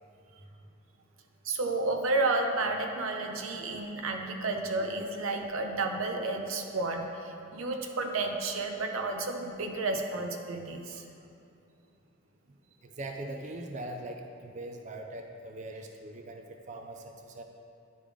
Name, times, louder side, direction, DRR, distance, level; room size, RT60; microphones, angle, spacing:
voice 1, 1.4-11.0, right 2 dB, 90° right, 4 dB, 0.7 m, -31 dB
voice 2, 12.8-17.4, right 1 dB, 35° right, 4 dB, 0.4 m, -41 dB
10.0 x 3.5 x 4.9 m, 2.6 s
head